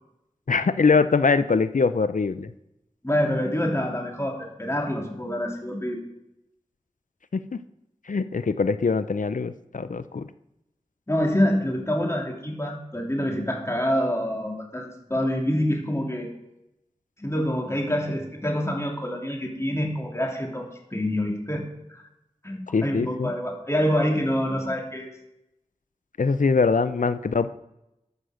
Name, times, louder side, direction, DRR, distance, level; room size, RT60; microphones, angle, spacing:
voice 1, 0.5-2.5 7.3-7.4 8.1-10.3 22.7-23.3 26.2-27.5, left 4 dB, 75° left, 12 dB, 0.5 m, -22 dB
voice 2, 3.0-6.0 11.1-16.3 17.2-21.6 21.9-22.0 22.4-25.1, equal, 20° left, 0 dB, 2.9 m, -26 dB
13.5 x 6.4 x 6.4 m, 0.88 s
wide cardioid pair, 45°, 13 cm